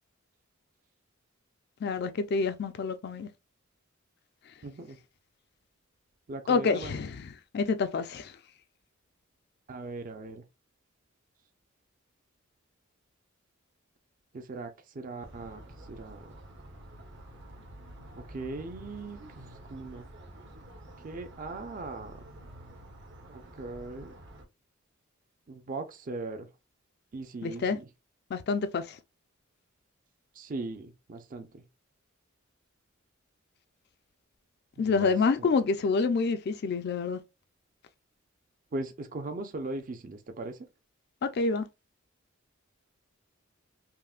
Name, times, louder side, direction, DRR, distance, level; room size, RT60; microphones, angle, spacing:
voice 1, 1.8-3.3 6.5-8.4 27.4-27.8 28.3-29.0 34.8-37.2 41.2-41.7, left 4 dB, 55° left, 0.4 m, -28 dB
voice 2, 4.6-5.0 6.3-6.9 9.7-10.4 14.3-16.3 18.2-20.1 21.0-22.2 23.3-24.1 25.5-26.5 27.1-27.8 30.3-31.6 34.8-35.1 35.4-35.5 38.7-40.7, right 2 dB, 40° right, 0.5 m, -39 dB
sound 1, 15.2-24.5, right 1 dB, 60° right, 1.0 m, -49 dB
5.5 x 2.1 x 2.4 m
head